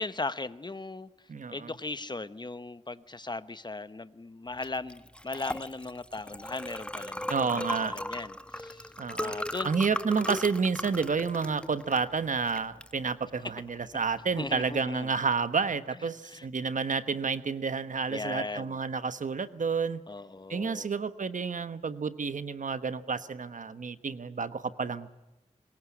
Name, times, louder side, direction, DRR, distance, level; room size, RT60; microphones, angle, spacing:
voice 1, 0.0-1.1 1.5-8.9 9.2-9.7 14.4-15.1 16.2-16.5 18.1-18.8 20.1-20.9, left 3 dB, 35° left, 13 dB, 1.1 m, -38 dB
voice 2, 1.3-1.7 7.3-8.0 9.0-9.4 9.6-20.0 20.5-25.1, right 5 dB, 85° right, 12 dB, 1.2 m, -30 dB
Liquid, 4.6-14.7, left 1 dB, 10° left, 1.1 m, -38 dB
24.0 x 21.0 x 9.9 m, 1.0 s
wide cardioid pair, 75°, 13 cm